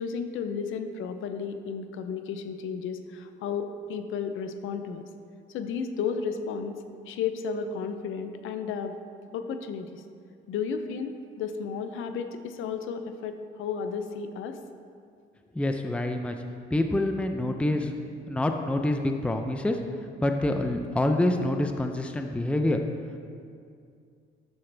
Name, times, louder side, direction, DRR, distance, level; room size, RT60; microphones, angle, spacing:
voice 1, 0.0-5.0 5.5-6.8 7.1-8.9 9.3-10.0 10.5-14.6, left 6 dB, 80° left, 8 dB, 0.6 m, -33 dB
voice 2, 15.5-16.4 16.7-17.9 18.3-19.8 20.2-22.8, left 1 dB, 5° left, 5 dB, 0.5 m, -26 dB
11.5 x 6.7 x 3.4 m, 2.3 s
cardioid pair, 90°, 20 cm